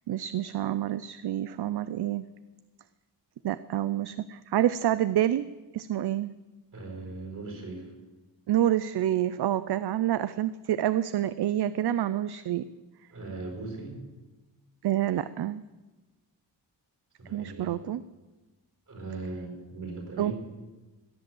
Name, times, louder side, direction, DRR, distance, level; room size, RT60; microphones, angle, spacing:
voice 1, 0.1-2.2 3.4-5.5 5.7-6.3 8.5-12.7 14.8-15.6 17.3-18.0 20.2-20.3, right 12 dB, 65° right, 15 dB, 0.5 m, -27 dB
voice 2, 6.7-7.9 13.1-14.0 17.2-17.8 18.9-20.3, right 3 dB, 45° right, 2 dB, 5.1 m, -39 dB
17.0 x 10.0 x 7.7 m, 1.2 s
wide cardioid pair, 170°, 44 cm